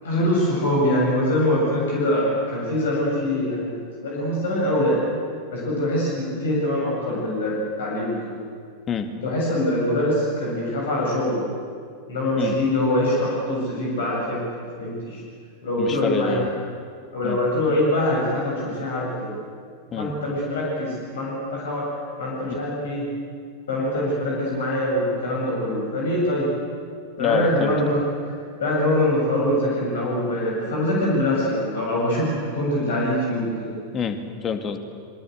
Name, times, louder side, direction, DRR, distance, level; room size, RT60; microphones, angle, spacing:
voice 1, 0.0-5.0 5.5-8.3 9.2-11.4 12.1-14.4 14.8-15.2 15.6-16.4 17.1-19.3 19.9-21.9 22.2-23.1 23.7-26.5 27.2-28.3 28.6-33.7, left 1 dB, 60° left, -3 dB, 7.6 m, -23 dB
voice 2, 15.8-16.5 17.2-17.4 19.9-20.1 22.5-22.6 27.2-27.7 33.9-34.8, left 6 dB, 25° left, 8 dB, 2.3 m, -27 dB
27.0 x 23.5 x 8.1 m, 2.1 s
figure-of-eight pair, 90°, 0 cm